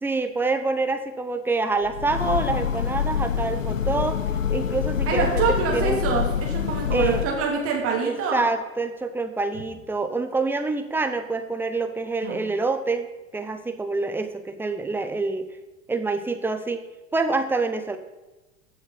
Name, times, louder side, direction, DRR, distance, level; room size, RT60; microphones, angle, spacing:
voice 1, 0.0-4.2 4.5-6.0 6.9-7.2 8.0-13.1 13.3-15.5 15.9-16.8 17.1-18.0, right 3 dB, 5° right, 8 dB, 0.9 m, -26 dB
Train, 1.8-7.6, left 8 dB, 90° left, 0.5 m, -26 dB
voice 2, 5.1-8.5 12.2-12.4, right 5 dB, 35° right, -1 dB, 2.8 m, -25 dB
14.5 x 6.6 x 5.7 m, 1.1 s
figure-of-eight pair, 85°, 38 cm